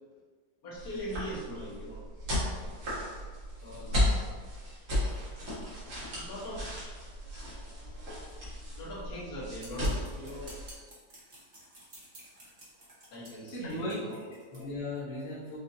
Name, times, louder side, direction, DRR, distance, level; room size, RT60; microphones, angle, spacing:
voice 1, 0.6-2.0 2.4-2.8 3.6-4.3 6.1-7.1 8.7-10.6 13.1-14.3, equal, 65° left, -9 dB, 1.8 m, -42 dB
sound 1, 0.7-10.7, left 1 dB, 75° right, 2.1 m, -35 dB
sound 2, 9.6-14.6, right 1 dB, 35° right, 1.1 m, -52 dB
voice 2, 13.5-15.6, left 1 dB, 45° left, -9 dB, 1.3 m, -37 dB
6.0 x 2.7 x 2.7 m, 1.5 s
omnidirectional pair, 1.8 m